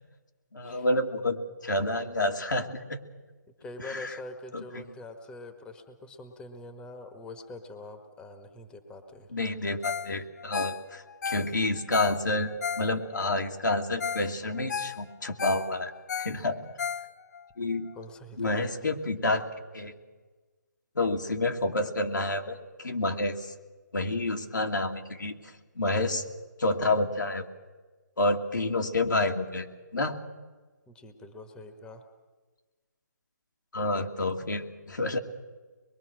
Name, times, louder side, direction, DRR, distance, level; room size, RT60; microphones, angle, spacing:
voice 1, 0.5-1.4 1.6-3.0 3.8-4.1 4.5-4.8 9.3-16.6 17.6-17.9 18.4-19.5 19.7-19.9 21.0-23.5 23.9-25.3 25.7-26.2 26.6-27.5 28.2-29.7 29.9-30.2 33.7-35.2, left 2 dB, 90° left, 3 dB, 2.6 m, -29 dB
voice 2, 3.6-9.3 17.9-18.9 30.9-32.1, left 2 dB, 10° left, 7 dB, 1.4 m, -44 dB
Ringtone, 9.8-10.1 10.4-13.3 13.7-13.8 14.0-14.3 14.6-17.4 17.9-18.0, left 7 dB, 60° left, 0.9 m, -34 dB
24.0 x 22.0 x 6.3 m, 1.3 s
hypercardioid pair, 155°, 10 cm